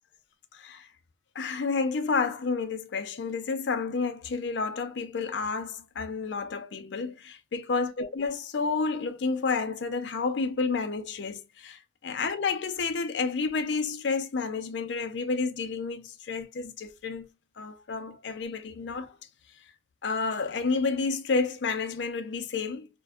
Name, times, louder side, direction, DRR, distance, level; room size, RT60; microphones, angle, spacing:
voice 1, 0.5-0.9 1.4-17.3 17.6-19.2 20.0-22.9, left 4 dB, 80° left, 0.5 m, -30 dB
2.5 x 2.1 x 2.3 m
head